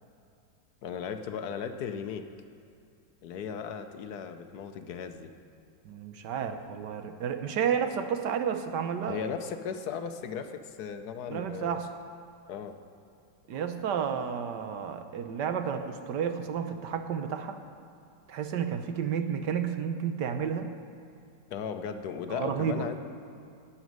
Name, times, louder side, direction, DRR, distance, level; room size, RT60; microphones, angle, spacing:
voice 1, 0.8-2.3 3.2-5.3 9.1-11.8 12.5-12.8 21.5-23.0, left 7 dB, 70° left, 8 dB, 1.2 m, -36 dB
voice 2, 5.8-9.2 11.3-11.9 13.5-17.6 18.3-20.7 22.3-22.9, right 7 dB, 75° right, 8 dB, 1.4 m, -31 dB
11.0 x 7.5 x 9.3 m, 2.6 s
omnidirectional pair, 1.9 m